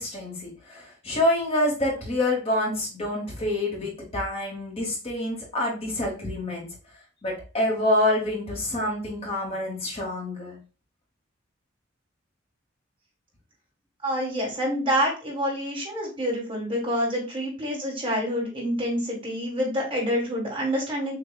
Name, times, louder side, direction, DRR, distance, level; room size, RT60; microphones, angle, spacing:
voice 1, 0.0-6.7 7.2-10.6, left 1 dB, 30° left, -2 dB, 1.1 m, -27 dB
voice 2, 14.0-21.2, equal, 25° right, -2 dB, 1.5 m, -27 dB
6.7 x 2.3 x 2.3 m, 0.34 s
head